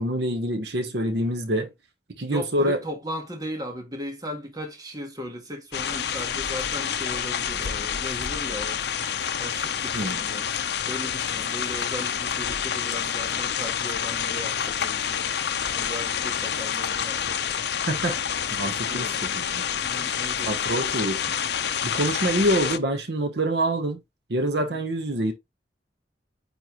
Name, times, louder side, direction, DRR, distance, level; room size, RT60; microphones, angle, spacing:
voice 1, 0.0-1.7 2.2-2.8 9.9-10.2 17.9-18.1 18.5-19.6 20.4-21.2 21.8-24.0 24.3-25.3, right 1 dB, 70° right, 1.1 m, -26 dB
voice 2, 2.1-8.8 9.4-10.5 10.9-15.3 15.7-17.8 18.1-18.2 18.9-19.4 19.8-20.8 24.7-24.8, equal, 20° right, 1.6 m, -37 dB
sound 1, 5.7-22.8, left 8 dB, 65° left, 0.6 m, -28 dB
9.2 x 3.3 x 3.1 m
head